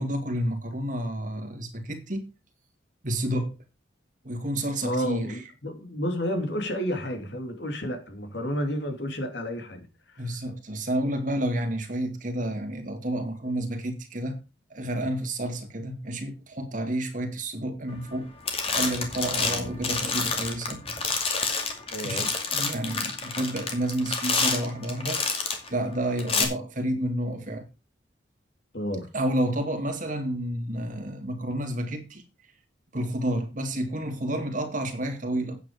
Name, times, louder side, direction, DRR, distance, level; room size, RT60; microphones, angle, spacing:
voice 1, 0.0-2.3 3.0-3.6 4.2-5.4 10.2-14.4 14.7-18.3 18.7-20.8 22.0-25.2 25.7-27.7 29.1-32.2 32.9-35.6, right 1 dB, 45° right, 2.1 m, -30 dB
voice 2, 4.8-10.3 19.4-19.7 21.9-22.3 26.3-26.5 28.7-29.1, equal, 65° left, 2.8 m, -31 dB
sound 1, 18.0-18.2 18.5-25.7 26.2-26.4, left 4 dB, 30° left, 2.4 m, -28 dB
9.3 x 8.7 x 5.0 m
head